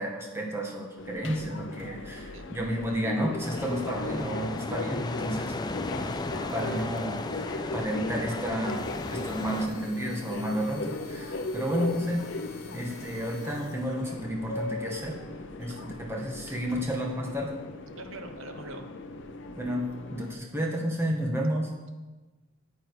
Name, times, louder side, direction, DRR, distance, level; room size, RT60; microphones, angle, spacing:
voice 1, 0.0-5.5 6.5-7.4 7.7-12.2 12.7-15.1 15.6-17.6 19.5-21.7, equal, 10° right, -1 dB, 1.5 m, -31 dB
Subway metro underground, 1.0-20.3, left 2 dB, 55° left, 0.7 m, -38 dB
sound 1, 3.4-9.7, left 2 dB, 20° left, 0.4 m, -35 dB
sound 2, 8.4-14.2, left 5 dB, 85° left, 1.5 m, -51 dB
voice 2, 18.0-18.9, right 2 dB, 60° right, 5 dB, 1.1 m, -43 dB
9.4 x 9.0 x 4.9 m, 1.2 s
head